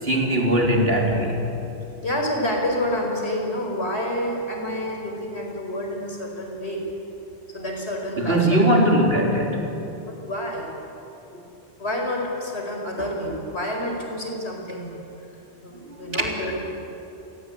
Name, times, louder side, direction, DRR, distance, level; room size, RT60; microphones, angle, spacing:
voice 1, 0.0-1.4 8.2-9.7 11.3-11.4 13.0-13.1 15.9-16.3, right 1 dB, 60° right, 0 dB, 4.1 m, -21 dB
voice 2, 2.0-6.8 7.5-8.6 10.0-10.7 11.8-14.9 15.6-16.6, left 1 dB, 70° left, 1 dB, 5.3 m, -28 dB
27.5 x 21.5 x 8.7 m, 2.9 s
omnidirectional pair, 1.1 m